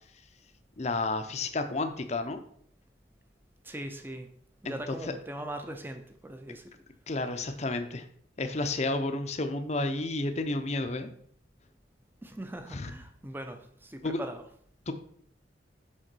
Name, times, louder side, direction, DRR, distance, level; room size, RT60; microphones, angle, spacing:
voice 1, 0.8-2.4 4.6-5.1 7.1-8.0 8.4-11.1 12.7-12.9 14.0-14.2 14.9-15.0, left 2 dB, 35° left, 7 dB, 0.7 m, -31 dB
voice 2, 3.6-4.3 4.6-6.7 12.2-14.4, right 1 dB, 10° right, 6 dB, 0.6 m, -40 dB
6.5 x 3.8 x 6.1 m, 0.63 s
head